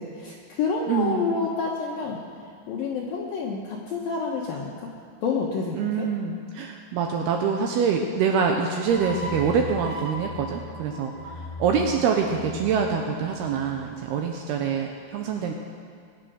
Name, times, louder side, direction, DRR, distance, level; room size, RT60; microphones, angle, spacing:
voice 1, 0.0-2.2 2.7-4.7 5.2-6.1, left 4 dB, 70° left, -2 dB, 2.4 m, -28 dB
voice 2, 0.9-1.4 5.7-15.5, right 6 dB, 75° right, 2 dB, 2.5 m, -25 dB
sound 1, 8.9-14.1, left 1 dB, 50° right, 2.4 m, -38 dB
21.0 x 8.8 x 6.3 m, 2.1 s
omnidirectional pair, 5.3 m